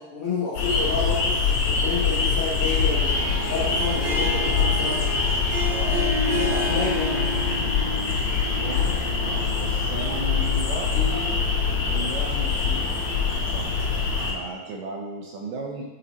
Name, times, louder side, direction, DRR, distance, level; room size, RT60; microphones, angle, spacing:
voice 1, 0.0-3.2 3.4-5.1 6.4-7.3, left 4 dB, 90° left, -10 dB, 1.2 m, -29 dB
sound 1, 0.5-14.3, left 5 dB, 65° left, 1.7 m, -24 dB
Harp, 2.9-11.2, left 1 dB, 60° right, 1.5 m, -32 dB
voice 2, 5.6-6.2 8.6-11.5 11.9-13.9 14.2-15.8, right 2 dB, 80° right, 0 dB, 1.9 m, -35 dB
8.1 x 4.0 x 2.9 m, 1.2 s
omnidirectional pair, 4.5 m